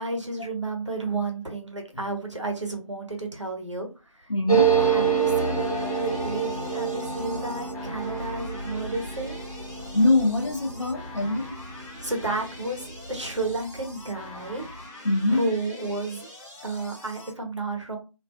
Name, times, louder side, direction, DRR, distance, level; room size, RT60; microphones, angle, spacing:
voice 1, 0.0-4.3 4.8-5.7 6.0-9.4 12.0-14.6 15.3-16.3 16.6-18.0, right 2 dB, 55° right, 0.7 m, -32 dB
voice 2, 4.3-4.7 9.9-11.6 15.0-15.4, left 2 dB, 55° left, 0.6 m, -23 dB
sound 1, 4.5-13.6 13.9-14.0 14.2-14.8, right 6 dB, 85° left, 0.9 m, -28 dB
sound 2, 4.5-17.3, left 1 dB, 25° right, 0.8 m, -44 dB
2.3 x 2.3 x 2.3 m
figure-of-eight pair, 175°, 18 cm